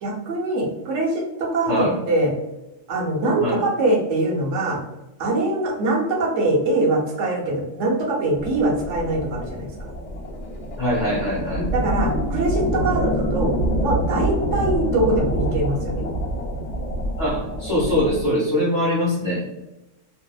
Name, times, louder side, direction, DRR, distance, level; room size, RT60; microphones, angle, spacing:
voice 1, 0.0-2.3 2.9-4.8 5.2-9.7 11.7-13.5 13.8-16.0, right 2 dB, 70° right, -1 dB, 0.9 m, -23 dB
voice 2, 1.7-2.0 3.4-3.6 10.8-11.7 17.2-19.4, equal, 15° left, -9 dB, 1.1 m, -22 dB
sound 1, 8.4-18.3, equal, 70° left, 0.9 m, -26 dB
2.6 x 2.0 x 2.3 m, 0.98 s
omnidirectional pair, 1.4 m